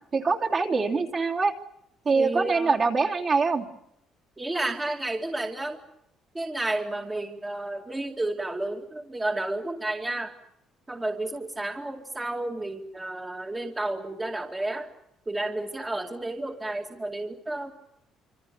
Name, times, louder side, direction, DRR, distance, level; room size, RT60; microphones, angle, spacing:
voice 1, 0.1-1.6 2.0-3.7, right 4 dB, 35° right, 1 dB, 3.0 m, -24 dB
voice 2, 2.1-2.8 4.4-5.8 6.3-10.4 10.9-14.9 15.3-17.7, right 2 dB, 15° right, 2 dB, 2.3 m, -31 dB
26.5 x 26.0 x 6.9 m, 0.80 s
cardioid pair, 130°, 0 cm